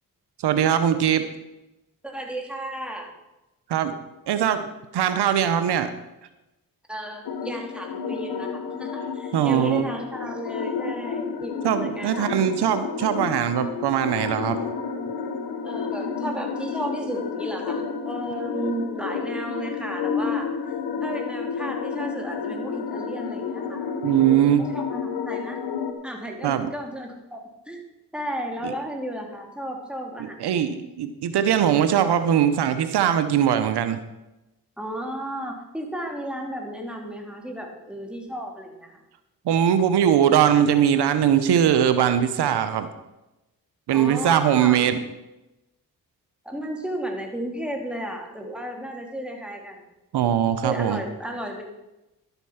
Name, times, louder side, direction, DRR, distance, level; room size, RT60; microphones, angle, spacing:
voice 1, 0.4-1.3 3.7-3.9 4.3-4.7 4.9-5.9 9.3-9.9 11.6-14.6 24.0-24.7 26.4-26.7 28.6-28.7 30.2-34.0 39.5-42.9 43.9-45.0 50.1-51.0, right 9 dB, 85° right, 10 dB, 0.8 m, -21 dB
voice 2, 2.0-3.1 6.9-12.4 15.6-20.7 21.0-23.8 24.2-25.6 26.0-27.8 28.1-30.7 34.8-39.0 43.9-44.9 46.4-49.8 50.6-51.6, right 1 dB, 5° right, 1 dB, 3.0 m, -34 dB
sound 1, 7.2-25.9, left 5 dB, 85° left, 1.2 m, -31 dB
12.0 x 8.1 x 5.7 m, 0.97 s
cardioid pair, 55°, 39 cm